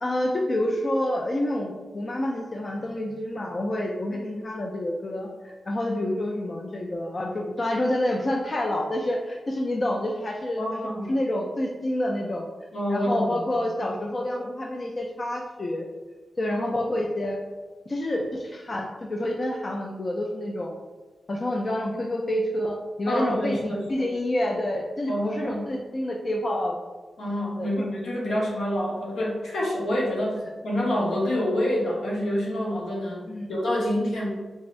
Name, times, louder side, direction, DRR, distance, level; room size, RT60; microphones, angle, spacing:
voice 1, 0.0-5.3 5.7-12.4 12.9-15.8 16.4-17.4 17.9-20.7 21.3-26.8 27.6-27.7 28.3-28.4 33.3-33.5, left 1 dB, 35° left, 0 dB, 0.4 m, -28 dB
voice 2, 10.6-11.1 12.7-13.4 23.1-23.8 25.1-25.7 27.2-34.3, equal, 80° left, -4 dB, 0.9 m, -27 dB
3.5 x 2.5 x 3.1 m, 1.3 s
wide cardioid pair, 105°, 0 cm